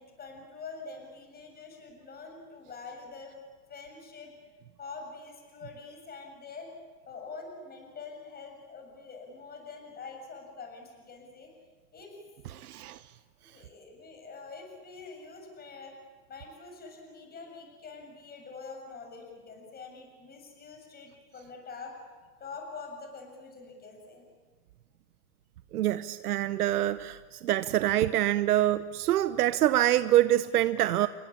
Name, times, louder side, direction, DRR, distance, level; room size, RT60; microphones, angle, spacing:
voice 1, 0.0-3.4 3.7-4.3 4.8-6.7 7.1-11.5 11.9-12.1 13.4-15.9 16.3-21.9 22.4-24.2, left 4 dB, 20° left, 3 dB, 7.4 m, -45 dB
voice 2, 12.5-13.0 25.7-31.1, right 13 dB, 80° right, 13 dB, 1.0 m, -25 dB
28.5 x 22.5 x 8.7 m, 1.5 s
hypercardioid pair, 130°, 45 cm